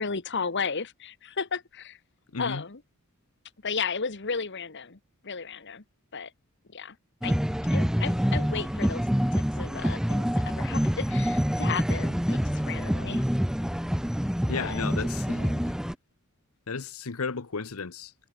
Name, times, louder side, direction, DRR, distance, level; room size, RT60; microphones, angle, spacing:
voice 1, 0.0-2.0 2.4-2.8 3.6-5.8 6.1-6.3 6.7-7.0 7.2-7.4 7.7-13.2 14.5-14.8 15.3-15.7, left 5 dB, 55° left, 1.5 m, -34 dB
voice 2, 2.3-2.6 14.5-15.4 16.7-18.1, left 4 dB, 75° left, 1.0 m, -33 dB
sound 1, 7.2-15.9, equal, 5° right, 0.8 m, -26 dB
head